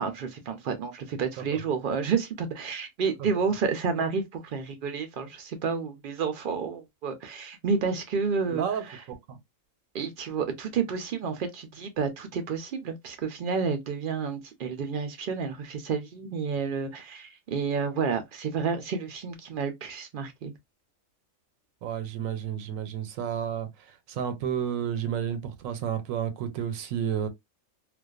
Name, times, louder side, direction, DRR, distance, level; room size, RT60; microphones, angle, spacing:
voice 1, 0.0-9.0 9.9-20.5, right 5 dB, 65° right, 0.5 m, -30 dB
voice 2, 8.4-9.4 21.8-27.3, right 9 dB, 90° right, 1.0 m, -31 dB
2.4 x 2.2 x 2.3 m
omnidirectional pair, 1.4 m